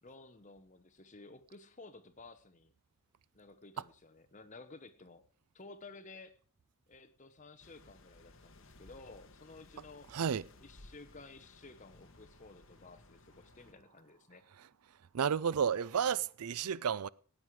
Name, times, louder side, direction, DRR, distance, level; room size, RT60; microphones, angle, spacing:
voice 1, 0.0-2.7 3.3-5.2 5.5-6.4 6.9-10.1 10.6-14.4, left 3 dB, 35° left, 1.1 m, -54 dB
sound 1, 7.6-13.7, left 2 dB, 60° left, 1.3 m, -59 dB
voice 2, 10.1-10.4 15.1-17.1, right 7 dB, 85° right, 0.5 m, -31 dB
16.5 x 9.5 x 4.8 m
head